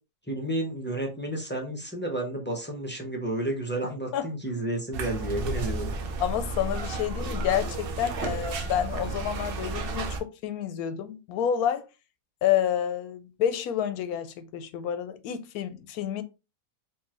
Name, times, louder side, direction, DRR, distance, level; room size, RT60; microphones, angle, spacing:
voice 1, 0.3-5.9, right 1 dB, 10° left, 0.5 m, -31 dB
sound 1, 4.9-10.2, right 3 dB, 65° right, 0.5 m, -32 dB
voice 2, 6.2-11.8 12.4-16.2, left 9 dB, 75° left, 1.0 m, -29 dB
4.6 x 2.7 x 2.9 m
omnidirectional pair, 1.7 m